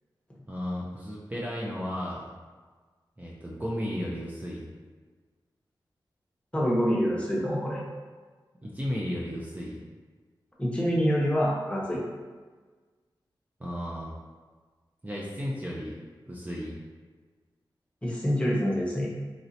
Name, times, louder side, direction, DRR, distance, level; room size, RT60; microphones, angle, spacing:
voice 1, 0.5-2.3 3.2-4.7 8.6-9.8 13.6-14.1 15.0-16.0 16.3-16.8, equal, 20° right, -5 dB, 0.5 m, -34 dB
voice 2, 6.5-7.8 10.6-12.0 18.0-19.1, equal, 15° left, -5 dB, 0.8 m, -26 dB
3.1 x 2.7 x 2.7 m, 1.4 s
cardioid pair, 55°, 8 cm